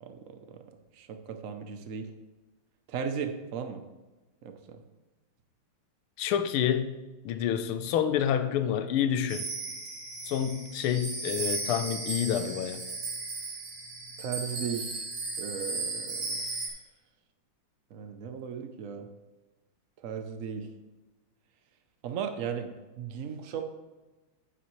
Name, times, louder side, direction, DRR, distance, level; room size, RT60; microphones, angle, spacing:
voice 1, 0.0-0.6 0.9-2.1 2.9-3.8 4.4-4.8 14.2-15.0 15.4-16.5 17.9-19.1 20.0-20.7 22.0-23.6, right 7 dB, 75° right, 7 dB, 0.7 m, -36 dB
voice 2, 6.2-7.0 7.2-9.5 10.2-12.8, left 9 dB, 80° left, 10 dB, 1.6 m, -28 dB
sound 1, 9.3-16.7, right 3 dB, 45° right, 1.9 m, -36 dB
9.6 x 8.6 x 3.1 m, 1.1 s
omnidirectional pair, 2.4 m